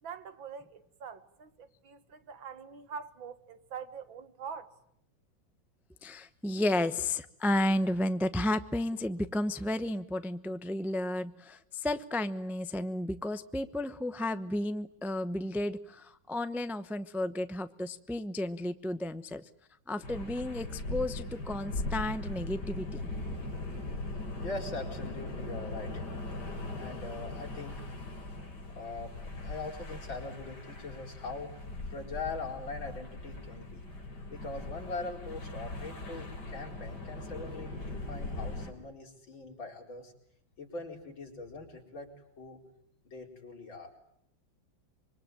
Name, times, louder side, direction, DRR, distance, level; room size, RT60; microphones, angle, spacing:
voice 1, 0.0-4.7, right 6 dB, 80° right, 2.3 m, -44 dB
voice 2, 6.0-19.4 19.9-23.1, left 1 dB, ahead, 0.4 m, -32 dB
sound 1, 20.0-38.7, left 2 dB, 55° left, 4.8 m, -40 dB
voice 3, 24.4-26.1 26.8-27.8 28.7-29.1 29.4-31.5 31.9-33.8 34.3-40.1 40.6-42.6 43.1-43.9, left 3 dB, 80° left, 5.2 m, -42 dB
26.0 x 24.5 x 9.2 m
omnidirectional pair, 2.1 m